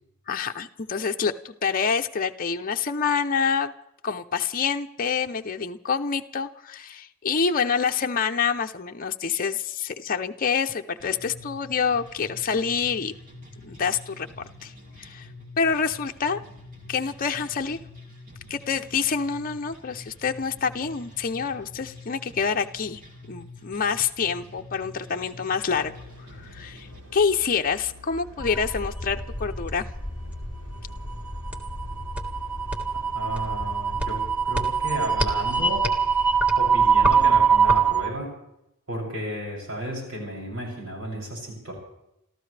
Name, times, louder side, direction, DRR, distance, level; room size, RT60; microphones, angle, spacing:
voice 1, 0.3-3.7 4.0-13.1 13.6-14.3 14.6-14.7 15.0-15.3 15.6-16.4 16.9-17.8 18.5-23.0 23.3-25.9 26.4-29.9, left 6 dB, 40° left, 4 dB, 0.7 m, -27 dB
sound 1, 11.0-27.0, left 2 dB, 40° right, 3.6 m, -46 dB
sound 2, 25.7-38.0, left 1 dB, 90° right, 4.8 m, -47 dB
sound 3, 28.4-38.1, right 5 dB, 5° right, 1.7 m, -24 dB
voice 2, 32.9-35.9 36.6-38.3 38.9-41.7, right 1 dB, 75° right, -3 dB, 7.2 m, -33 dB
30.0 x 14.0 x 3.3 m, 0.83 s
head